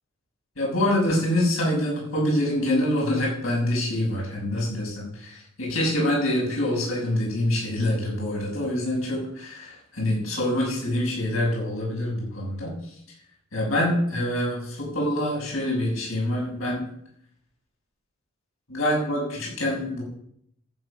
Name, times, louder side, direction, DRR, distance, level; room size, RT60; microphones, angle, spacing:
voice 1, 0.6-12.9 13.5-16.9 18.7-20.0, left 1 dB, 90° left, -3 dB, 6.6 m, -25 dB
14.0 x 7.9 x 6.2 m, 0.71 s
head